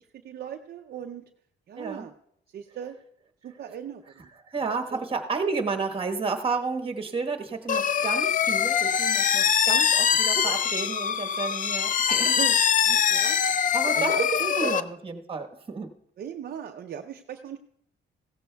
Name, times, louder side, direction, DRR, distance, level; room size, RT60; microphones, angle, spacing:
voice 1, 0.2-1.3 1.7-2.1 2.5-3.0 3.4-4.3 4.9-5.1 8.8-9.0 10.3-10.6 12.1-12.6 12.8-13.4 13.8-14.8 16.2-17.6, right 8 dB, 55° right, 4 dB, 0.5 m, -37 dB
voice 2, 1.8-2.1 4.4-12.4 13.7-14.1 14.5-15.9, right 4 dB, 30° right, 4 dB, 1.2 m, -31 dB
sound 1, 7.7-14.8, left 8 dB, 45° left, 0.4 m, -23 dB
16.5 x 14.0 x 2.3 m, 0.73 s
cardioid pair, 120°, 19 cm